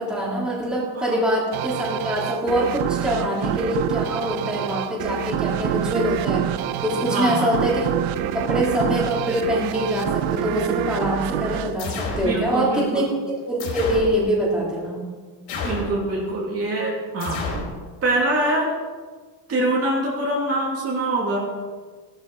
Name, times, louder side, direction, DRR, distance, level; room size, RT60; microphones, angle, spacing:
voice 1, 0.0-6.5 6.8-7.9 8.3-13.1 13.4-15.0, equal, ahead, -5 dB, 3.4 m, -24 dB
sound 1, 1.5-12.8, right 11 dB, 75° right, 1.0 m, -27 dB
voice 2, 7.0-7.6 12.2-13.1 15.6-17.5 18.0-18.7 19.5-21.6, right 2 dB, 30° right, -3 dB, 2.9 m, -24 dB
sound 2, 11.8-12.3 13.6-14.1 15.5-16.0 17.2-17.7, left 3 dB, 60° left, 4.8 m, -29 dB
17.0 x 12.5 x 4.8 m, 1.4 s
cardioid pair, 170°, 48 cm